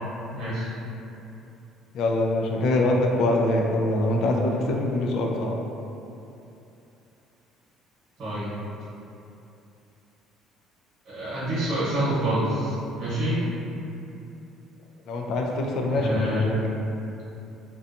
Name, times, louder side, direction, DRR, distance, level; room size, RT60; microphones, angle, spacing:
voice 1, 0.3-0.7 8.2-8.5 11.0-13.4 15.9-16.4, right 1 dB, 55° right, -10 dB, 1.0 m, -27 dB
voice 2, 1.9-5.5 15.1-16.6, left 1 dB, 65° left, 0 dB, 0.3 m, -24 dB
2.6 x 2.2 x 2.5 m, 2.8 s
cardioid pair, 115°, 0 cm